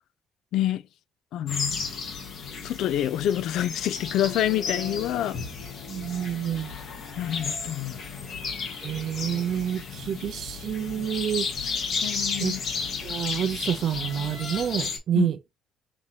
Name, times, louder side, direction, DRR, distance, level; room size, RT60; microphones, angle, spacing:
voice 1, 0.5-0.8 1.3-1.8 2.6-5.4 7.2-7.9 12.0-12.6 15.2-15.3, left 12 dB, 80° left, 0.3 m, -27 dB
sound 1, 1.5-15.0, left 5 dB, 55° left, 1.4 m, -33 dB
voice 2, 5.9-6.7 8.8-11.5 12.4-12.5 13.0-15.4, right 9 dB, 55° right, 0.5 m, -28 dB
6.0 x 2.8 x 2.8 m
cardioid pair, 150°, 0 cm